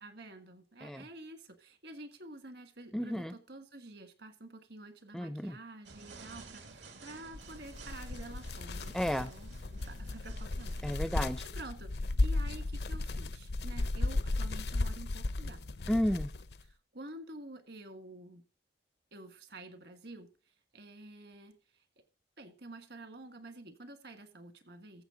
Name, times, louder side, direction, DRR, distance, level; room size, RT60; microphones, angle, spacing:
voice 1, 0.0-10.8 11.6-15.6 16.6-18.4 19.1-21.8 22.4-25.0, right 2 dB, 65° right, 8 dB, 1.7 m, -49 dB
voice 2, 2.9-3.3 5.1-5.6 8.9-9.3 10.8-11.4 15.9-16.3, equal, ahead, 13 dB, 0.4 m, -32 dB
sound 1, 5.9-11.0, right 3 dB, 90° right, 1.9 m, -52 dB
sound 2, 7.3-16.6, left 2 dB, 65° left, 0.6 m, -35 dB
14.5 x 7.2 x 3.8 m, 0.37 s
head